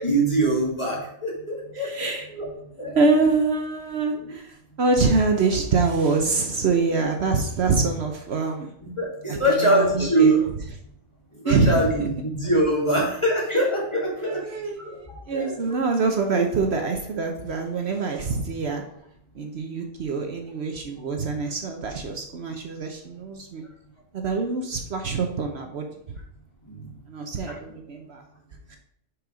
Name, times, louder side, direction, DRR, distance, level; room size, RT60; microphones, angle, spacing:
voice 1, 0.0-2.5 2.8-3.0 4.1-4.3 6.9-7.1 8.8-10.5 11.4-14.4 14.8-15.6 16.0-16.4 26.7-26.9 27.5-27.6, right 1 dB, 25° left, -4 dB, 2.0 m, -24 dB
voice 2, 1.7-2.2 2.9-8.7 9.3-9.9 10.2-10.3 11.4-11.7 14.2-18.8 19.3-23.6 24.1-25.9 27.1-28.2 28.7-28.8, right 4 dB, 65° right, 3 dB, 1.0 m, -25 dB
6.4 x 4.8 x 5.0 m, 0.72 s
omnidirectional pair, 1.2 m